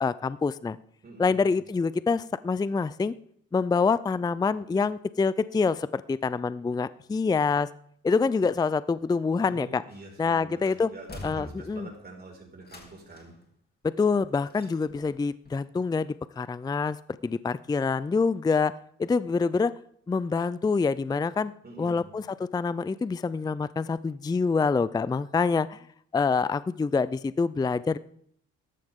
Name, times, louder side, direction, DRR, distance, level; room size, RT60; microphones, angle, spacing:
voice 1, 0.0-0.8 1.2-3.1 3.5-7.7 8.0-9.8 10.2-10.9 11.2-11.9 13.8-17.0 17.2-19.7 20.1-21.5 21.8-25.8 26.1-28.0, left 4 dB, 15° left, 17 dB, 0.4 m, -26 dB
voice 2, 1.0-1.5 9.3-13.4 21.6-22.1, right 3 dB, 30° right, 0 dB, 5.3 m, -45 dB
sound 1, 9.9-10.3 10.6-12.0 12.6-13.4 14.5-15.1 15.5-15.6, left 2 dB, 30° left, 2.9 m, -45 dB
14.0 x 11.5 x 3.7 m, 0.64 s
cardioid pair, 90°, 30 cm